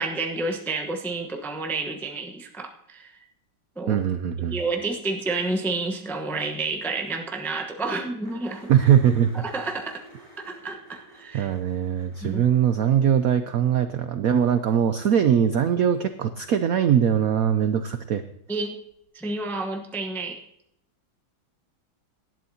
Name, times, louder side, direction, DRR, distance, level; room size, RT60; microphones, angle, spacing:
voice 1, 0.0-3.1 3.8-4.0 4.5-8.7 9.3-10.0 10.4-11.5 12.2-12.4 18.5-18.8 19.1-20.4, right 3 dB, ahead, 3 dB, 0.4 m, -30 dB
voice 2, 3.9-4.6 8.7-9.4 11.3-18.2, right 9 dB, 85° right, 10 dB, 0.7 m, -21 dB
sound 1, 6.8-6.9 7.1-7.2 7.5-7.6 8.2-13.6 15.9-16.0 18.9-19.0, equal, 15° right, 5.7 m, -50 dB
18.5 x 12.0 x 2.8 m, 0.77 s
omnidirectional pair, 2.2 m